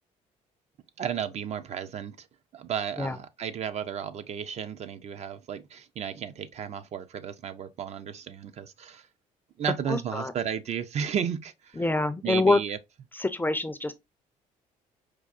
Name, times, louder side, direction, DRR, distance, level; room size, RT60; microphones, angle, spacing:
voice 1, 1.0-2.3 2.5-9.1 9.6-11.9 12.2-12.8, right 8 dB, 50° right, 0.4 m, -33 dB
voice 2, 9.9-10.3 11.8-12.6 13.2-13.9, left 2 dB, 15° left, 0.4 m, -25 dB
4.6 x 2.3 x 2.4 m
cardioid pair, 95°, 15 cm